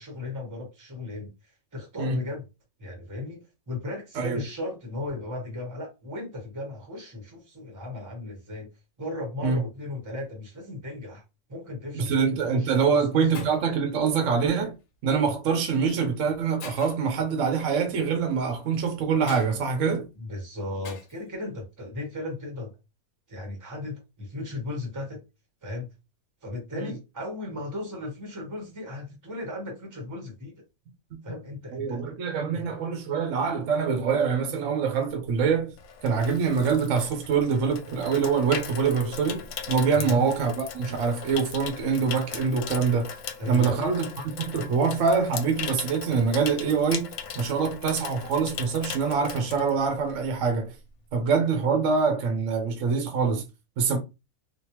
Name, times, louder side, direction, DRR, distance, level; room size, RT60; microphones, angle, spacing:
voice 1, 0.0-2.4 2.8-8.7 9.0-11.2 11.5-13.4 20.2-22.8 23.3-25.2 25.6-25.9 26.4-30.6 31.2-32.0 32.5-32.7 39.9-40.2 43.4-43.9, left 2 dB, 15° right, 0.9 m, -36 dB
voice 2, 11.9-14.7 15.0-20.1 26.8-26.9 31.1-31.2 31.7-35.7 36.0-43.1 43.5-47.1 47.3-50.8 51.1-53.4 53.8-54.0, right 5 dB, 65° right, 1.0 m, -25 dB
Shatter, 12.1-12.3 13.0-13.1 13.3-13.8 15.1-15.3 15.9-16.0 16.6-17.1 19.3-19.5 20.8-21.2, left 5 dB, 70° left, 1.1 m, -43 dB
Water tap faucet / Sink (filling or washing), 35.3-50.3 50.6-50.9, left 7 dB, 85° left, 1.1 m, -39 dB
3.4 x 2.4 x 2.9 m
omnidirectional pair, 1.5 m